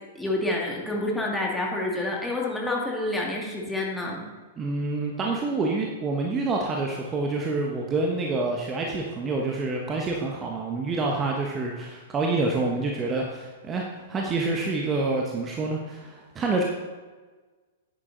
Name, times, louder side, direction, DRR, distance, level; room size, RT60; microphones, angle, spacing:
voice 1, 0.2-4.2, left 2 dB, 5° left, -2 dB, 2.2 m, -28 dB
voice 2, 4.6-16.6, right 3 dB, 20° right, 0 dB, 1.2 m, -27 dB
10.0 x 9.1 x 4.0 m, 1.4 s
figure-of-eight pair, 105°, 0 cm